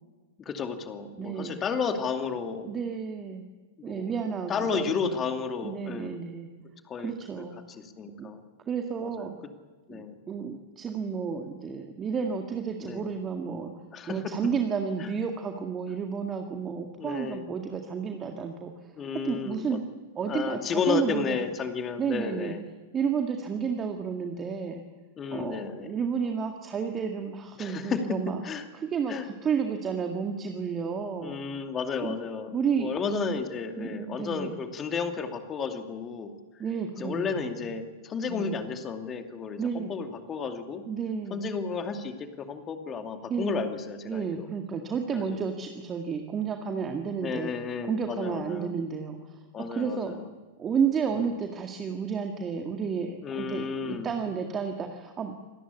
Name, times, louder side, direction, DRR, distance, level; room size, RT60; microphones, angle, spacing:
voice 1, 0.5-2.7 3.9-4.1 4.5-6.2 6.9-8.4 9.0-9.3 9.9-10.1 12.8-13.1 13.9-14.2 15.0-15.1 17.0-17.5 19.0-19.8 20.3-22.6 25.2-25.9 27.6-28.2 28.4-28.7 29.1-29.3 31.2-36.3 37.0-40.8 41.3-44.5 45.1-45.4 47.2-48.7 49.5-50.3 53.2-54.1, left 5 dB, 25° left, 6 dB, 2.5 m, -32 dB
voice 2, 1.2-1.6 2.6-3.4 3.8-5.2 5.6-6.5 7.0-7.6 8.2-8.3 8.7-9.3 9.9-13.7 14.1-18.9 19.2-19.8 20.2-21.4 22.0-22.6 22.9-24.8 25.3-28.4 28.7-31.4 32.0-32.2 32.5-32.9 33.8-34.6 36.6-37.7 38.3-38.6 39.6-39.9 40.9-41.4 43.3-43.6 44.0-47.5 47.8-49.4 49.7-50.1 50.6-55.3, right 6 dB, 20° right, 4 dB, 2.0 m, -31 dB
26.5 x 18.5 x 8.4 m, 1.3 s
figure-of-eight pair, 95°, 0 cm